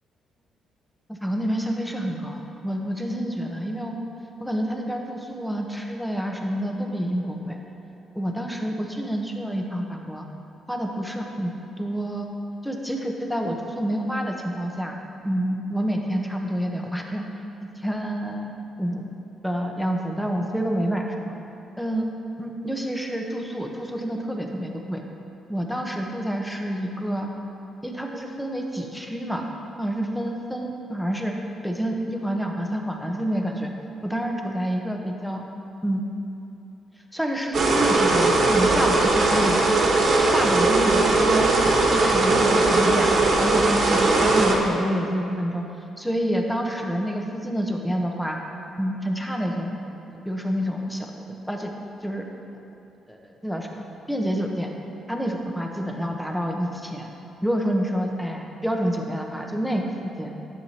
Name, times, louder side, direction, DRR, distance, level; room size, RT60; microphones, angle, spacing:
voice 1, 1.1-4.0 4.4-7.6 8.1-10.2 10.7-11.5 11.8-12.3 12.6-14.9 15.2-17.2 17.6-18.5 18.8-19.1 19.4-21.4 21.8-22.1 22.4-25.0 25.5-27.3 27.8-29.5 29.8-31.3 31.6-33.7 34.0-35.4 35.8-36.0 37.1-39.6 40.2-41.5 41.8-45.6 46.0-48.4 48.8-49.8 50.1-51.7 52.0-52.2 53.1-54.7 55.1-57.1 57.4-60.3, equal, ahead, 1 dB, 1.0 m, -28 dB
sound 1, 37.5-44.5, right 2 dB, 55° right, 1.3 m, -19 dB
11.0 x 7.9 x 2.9 m, 2.8 s
cardioid pair, 90°, 0 cm